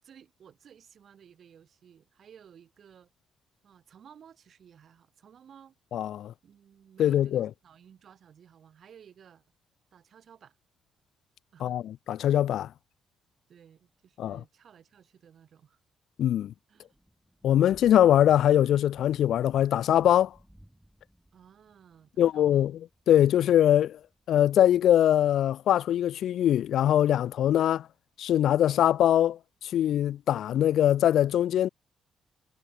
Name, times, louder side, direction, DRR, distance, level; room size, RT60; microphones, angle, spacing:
voice 1, 0.0-3.1 3.6-5.8 6.4-9.4 9.9-10.6 11.5-11.8 13.5-15.8 16.7-17.0 21.3-22.8, right 8 dB, 55° right, 6.1 m, -55 dB
voice 2, 5.9-6.3 7.0-7.5 11.6-11.8 12.1-12.7 14.2-14.4 16.2-16.5 17.4-20.3 22.2-22.8 23.1-24.0 24.3-27.9 28.2-29.4 29.7-31.7, left 11 dB, 75° left, 0.3 m, -22 dB
Thunder / Rain, 16.7-26.3, equal, 5° right, 5.5 m, -59 dB
cardioid pair, 90°, 0 cm